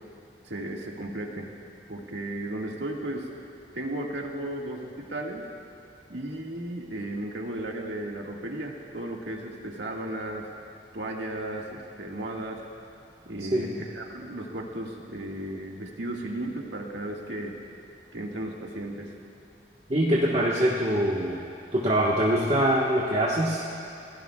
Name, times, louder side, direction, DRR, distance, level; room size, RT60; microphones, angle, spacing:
voice 1, 0.5-1.5 1.9-3.3 3.7-5.5 6.1-10.5 10.9-12.6 13.3-17.6 18.1-19.1, right 1 dB, 85° right, -1 dB, 1.8 m, -35 dB
voice 2, 19.9-21.4 21.7-23.6, right 1 dB, 40° right, -5 dB, 1.4 m, -23 dB
29.5 x 17.5 x 2.3 m, 2.9 s
head